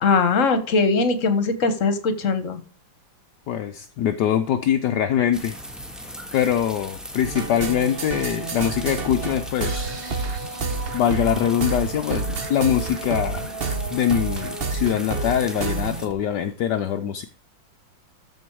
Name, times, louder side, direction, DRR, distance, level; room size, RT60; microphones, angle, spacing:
voice 1, 0.0-2.6, left 4 dB, 45° left, 10 dB, 1.6 m, -20 dB
voice 2, 3.5-5.6 6.3-9.9 10.9-13.5 13.9-17.2, left 9 dB, 70° left, 7 dB, 1.3 m, -23 dB
sound 1, 5.3-16.1, equal, ahead, 1.5 m, -38 dB
sound 2, 7.2-16.1, right 3 dB, 35° right, 1.1 m, -29 dB
13.5 x 5.2 x 4.7 m, 0.43 s
omnidirectional pair, 2.1 m